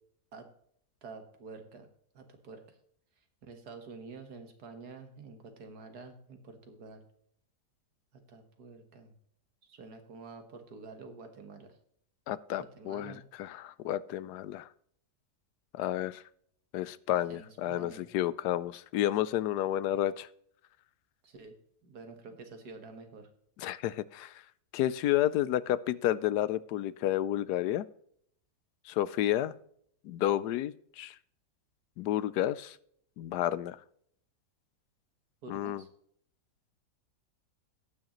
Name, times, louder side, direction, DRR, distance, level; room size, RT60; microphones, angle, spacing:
voice 1, 1.0-1.9 2.1-2.8 3.4-7.0 8.3-9.1 9.7-11.8 12.6-13.2 17.1-18.0 21.2-21.6 21.8-23.3 35.4-35.9, right 4 dB, 75° right, 6 dB, 2.0 m, -48 dB
voice 2, 12.3-14.7 15.7-16.2 16.7-20.3 23.6-24.4 24.7-27.8 28.9-29.5 30.0-31.2 32.0-32.8 33.2-33.8 35.5-35.8, left 13 dB, 80° left, 17 dB, 1.1 m, -31 dB
18.0 x 6.4 x 3.0 m, 0.66 s
omnidirectional pair, 1.7 m